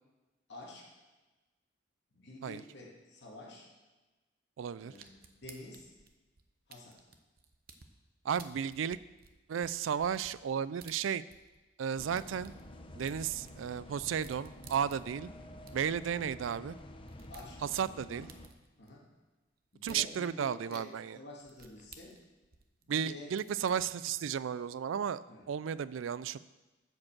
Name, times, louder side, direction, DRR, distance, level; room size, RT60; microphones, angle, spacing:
voice 1, 0.5-0.8 2.1-3.7 4.8-5.9 6.7-7.0 15.3-15.4 17.3-17.6 18.1-18.2 18.8-19.1 19.7-20.9 21.1-22.1 22.8-23.3 25.3-25.5, left 2 dB, 65° left, -3 dB, 2.2 m, -49 dB
voice 2, 4.6-4.9 8.2-9.0 9.5-11.2 11.8-12.5 13.0-15.3 15.7-16.8 17.7-18.3 19.8-21.2 22.9-26.4, right 8 dB, 85° right, 18 dB, 0.4 m, -34 dB
sound 1, 5.0-7.9 8.4-11.6 11.9-15.3 15.7-15.8 16.0-16.1 16.3-16.4 16.8-18.9 19.8-20.0 20.7-20.8 21.4-23.1 23.4-23.8, right 6 dB, 50° right, 0.8 m, -55 dB
sound 2, 12.0-18.5, left 1 dB, 25° left, 0.7 m, -50 dB
10.5 x 5.3 x 7.3 m, 1.2 s
head